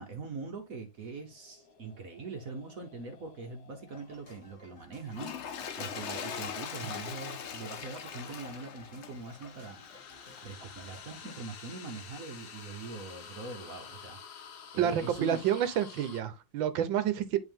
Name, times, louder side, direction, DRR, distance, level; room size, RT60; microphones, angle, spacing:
voice 1, 0.0-9.8 10.4-14.4 14.7-15.4, right 4 dB, 50° right, 1.2 m, -42 dB
sound 1, 1.0-6.2 8.7-16.2, left 6 dB, 55° left, 1.4 m, -51 dB
sound 2, 3.9-11.4, left 2 dB, 40° left, 2.8 m, -55 dB
Toilet flush, 5.1-10.6 11.2-11.4, left 7 dB, 90° left, 0.6 m, -41 dB
voice 2, 14.8-17.4, right 10 dB, 70° right, 1.5 m, -29 dB
10.5 x 3.5 x 3.6 m
omnidirectional pair, 2.2 m